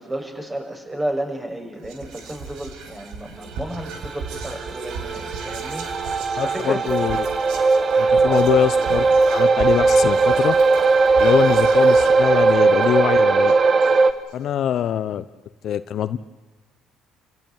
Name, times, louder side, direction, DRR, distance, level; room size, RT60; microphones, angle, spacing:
voice 1, 0.0-6.8 8.2-8.4, right 1 dB, 15° right, 4 dB, 6.2 m, -32 dB
Whispering, 1.8-14.3, right 4 dB, 75° right, 3.5 m, -37 dB
sound 1, 3.7-14.1, right 4 dB, 40° right, 1.6 m, -18 dB
voice 2, 6.3-7.3 8.0-9.1 9.3-10.5 11.2-13.5 14.3-15.2 15.6-16.2, left 10 dB, 60° left, 13 dB, 0.9 m, -23 dB
28.5 x 16.5 x 9.4 m, 1.2 s
supercardioid pair, 80°, 0 cm